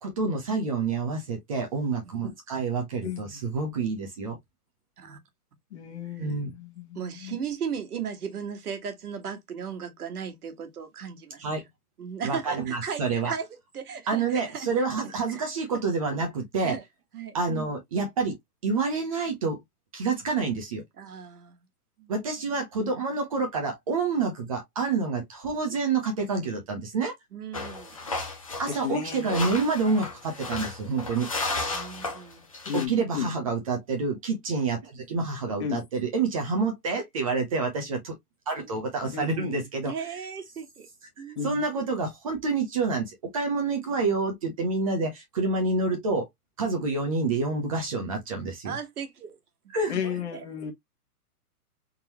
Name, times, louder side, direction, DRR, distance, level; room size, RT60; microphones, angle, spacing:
voice 1, 0.0-4.4 6.2-6.5 11.4-11.6 12.2-13.3 14.1-16.8 17.3-18.4 18.6-19.6 19.9-20.8 22.1-27.2 28.6-31.3 32.7-38.1 38.5-39.9 41.4-46.3 46.6-48.7 49.7-50.0, right 4 dB, 25° right, 0.7 m, -28 dB
voice 2, 3.0-3.4 5.7-7.4 28.7-29.3 32.6-33.3 35.6-35.8 39.0-39.6 41.4-41.6 49.9-50.7, left 8 dB, 45° left, 1.3 m, -34 dB
voice 3, 6.9-11.5 12.0-13.5 13.7-14.7 15.0-15.4 16.6-16.8 17.1-17.4 21.0-21.6 22.0-22.3 27.3-28.0 31.7-32.4 39.8-40.9 41.2-41.6 48.6-49.3 50.0-50.4, right 7 dB, 75° right, 1.5 m, -36 dB
sound 1, 27.5-32.9, left 3 dB, 25° left, 0.4 m, -33 dB
3.8 x 2.9 x 2.9 m
hypercardioid pair, 160°, 46 cm